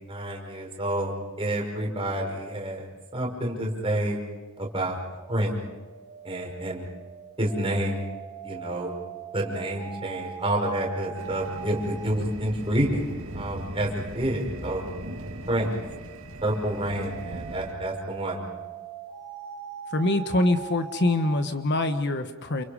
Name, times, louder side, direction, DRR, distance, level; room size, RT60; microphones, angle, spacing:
voice 1, 0.1-2.8 3.1-4.2 4.6-5.0 5.3-5.5 6.2-6.9 7.4-8.0 8.4-8.9 9.3-13.0 13.3-13.9 14.1-14.8 15.5-15.7 16.4-18.4, right 1 dB, 25° right, 0 dB, 5.5 m, -28 dB
sound 1, 4.8-12.1 14.2-21.5, right 9 dB, 5° left, 5.3 m, -42 dB
sound 2, 11.2-17.7, right 1 dB, 60° right, 3.1 m, -39 dB
voice 2, 19.9-22.6, left 2 dB, 50° left, 8 dB, 1.3 m, -24 dB
29.5 x 28.0 x 5.0 m, 1.3 s
head